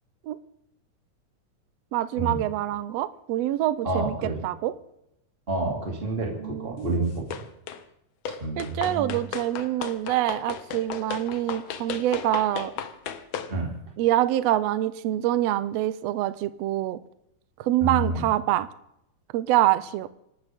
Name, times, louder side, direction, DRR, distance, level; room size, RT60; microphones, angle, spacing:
voice 1, 1.9-4.7 6.4-6.9 8.6-12.7 14.0-17.0 17.6-18.7 19.3-20.1, right 14 dB, 75° right, 13 dB, 1.6 m, -25 dB
voice 2, 3.8-4.4 5.5-7.2 8.4-9.2 13.5-13.7 17.8-18.2, right 2 dB, 20° right, -1 dB, 2.5 m, -28 dB
sound 1, 7.3-7.8 8.3-13.5, left 7 dB, 75° left, 1.1 m, -35 dB
27.0 x 12.5 x 3.6 m, 0.80 s
omnidirectional pair, 3.6 m